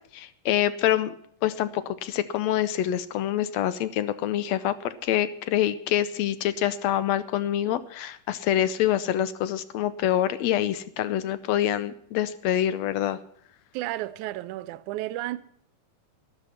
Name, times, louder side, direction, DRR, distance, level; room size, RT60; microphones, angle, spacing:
voice 1, 0.1-1.1 1.4-13.2, left 11 dB, 75° left, 1.7 m, -26 dB
voice 2, 13.7-15.4, right 16 dB, 80° right, 2.0 m, -32 dB
13.0 x 13.0 x 5.7 m
omnidirectional pair, 3.6 m